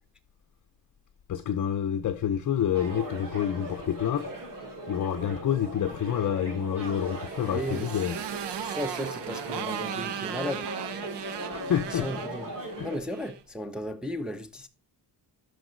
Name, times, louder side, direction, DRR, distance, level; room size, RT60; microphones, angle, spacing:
voice 1, 1.3-4.3 4.9-8.2 11.5-12.1 12.8-12.9, left 9 dB, 45° left, 0.6 m, -28 dB
sound 1, 2.7-13.0, right 1 dB, 50° right, 2.5 m, -39 dB
Motorcycle, 7.0-13.4, right 9 dB, 75° right, 0.8 m, -37 dB
voice 2, 7.4-7.9 8.6-10.7 11.9-12.5 12.8-14.7, equal, ahead, 0.6 m, -35 dB
12.5 x 5.1 x 3.9 m
cardioid pair, 115°, 42 cm